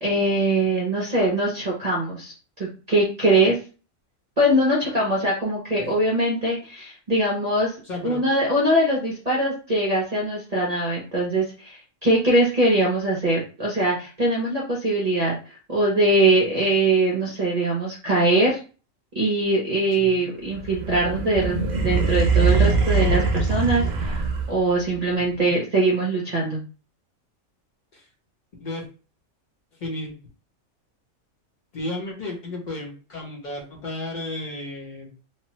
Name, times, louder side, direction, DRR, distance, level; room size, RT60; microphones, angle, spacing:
voice 1, 0.0-3.6 4.4-7.7 8.0-15.3 15.7-18.6 19.1-26.6, right 1 dB, 40° right, -3 dB, 0.7 m, -22 dB
voice 2, 7.8-8.2 20.0-20.3 25.3-25.6 27.9-28.1 28.6-28.9 29.8-30.1 31.7-35.1, left 2 dB, 40° left, -1 dB, 0.9 m, -33 dB
sound 1, 20.5-24.8, right 4 dB, 75° right, 0.4 m, -22 dB
3.1 x 2.1 x 2.9 m, 0.35 s
omnidirectional pair, 1.4 m